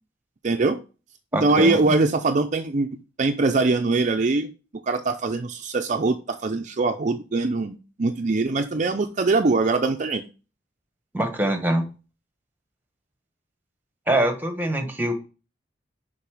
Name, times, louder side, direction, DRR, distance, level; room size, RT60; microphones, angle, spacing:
voice 1, 0.4-0.8 1.4-2.9 3.2-4.5 4.8-10.2, right 3 dB, 40° right, 6 dB, 0.5 m, -22 dB
voice 2, 1.3-1.8 11.1-11.9 14.1-15.1, right 1 dB, 10° right, 6 dB, 1.3 m, -23 dB
6.8 x 5.3 x 4.9 m, 0.34 s
head